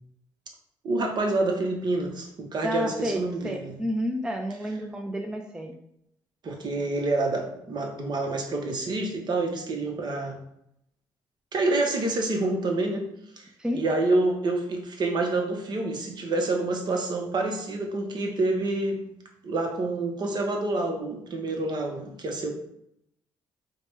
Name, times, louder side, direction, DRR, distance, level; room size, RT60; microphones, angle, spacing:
voice 1, 0.8-3.8 6.4-10.4 11.5-13.1 13.4-13.5 13.7-19.0 19.4-22.5, right 2 dB, 50° right, 3 dB, 0.9 m, -27 dB
voice 2, 2.6-3.2 3.4-5.8 13.6-13.8, equal, 10° right, 3 dB, 0.5 m, -30 dB
4.7 x 2.2 x 3.2 m, 0.77 s
supercardioid pair, 65°, 9 cm